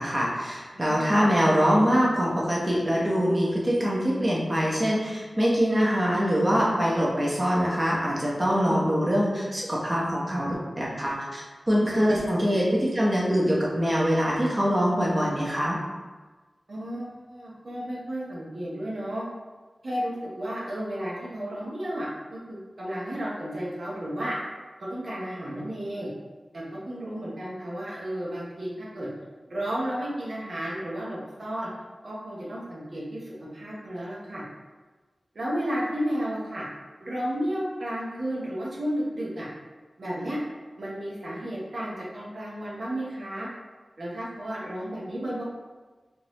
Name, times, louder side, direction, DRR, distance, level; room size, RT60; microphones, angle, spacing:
voice 1, 0.0-11.4 11.7-15.8, equal, 25° right, -5 dB, 0.9 m, -24 dB
voice 2, 0.7-1.3 8.5-8.8 11.9-12.1 16.7-19.2 19.8-24.4 24.9-26.1 26.5-29.1 29.5-31.7 32.0-34.4 35.3-36.6 37.0-39.5 40.0-40.4 40.8-43.5 44.0-45.4, equal, 70° right, -7 dB, 0.9 m, -33 dB
3.7 x 2.6 x 3.0 m, 1.3 s
cardioid pair, 50°, 0 cm